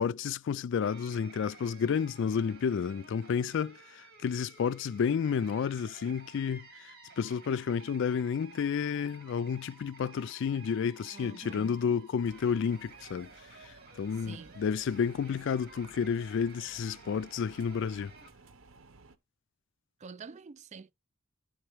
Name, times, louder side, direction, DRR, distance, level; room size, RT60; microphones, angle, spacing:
voice 1, 0.0-6.7 7.2-13.3 14.0-18.1, left 6 dB, 60° left, 0.3 m, -31 dB
sound 1, 0.8-18.3, right 4 dB, 50° right, 1.8 m, -54 dB
voice 2, 11.1-11.8 14.1-14.6 20.0-20.9, right 5 dB, 35° right, 0.4 m, -47 dB
sound 2, 12.2-19.2, right 3 dB, 70° right, 0.8 m, -57 dB
12.0 x 4.4 x 3.1 m
head